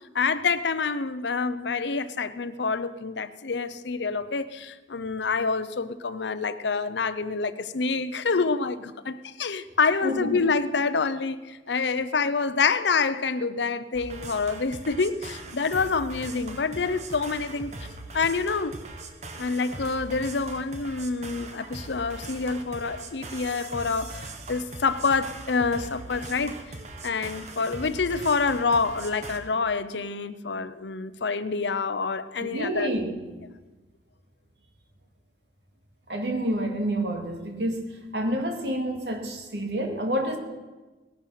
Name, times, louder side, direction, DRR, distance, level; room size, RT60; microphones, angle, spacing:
voice 1, 0.1-17.7 18.1-18.8 19.4-26.6 27.0-32.9, left 4 dB, 70° left, 13 dB, 0.7 m, -27 dB
voice 2, 10.0-10.4 32.5-33.2 36.1-40.4, right 1 dB, 65° right, 4 dB, 2.3 m, -28 dB
sound 1, 13.9-29.4, right 2 dB, 40° right, 1.3 m, -40 dB
18.5 x 11.5 x 5.8 m, 1.2 s
head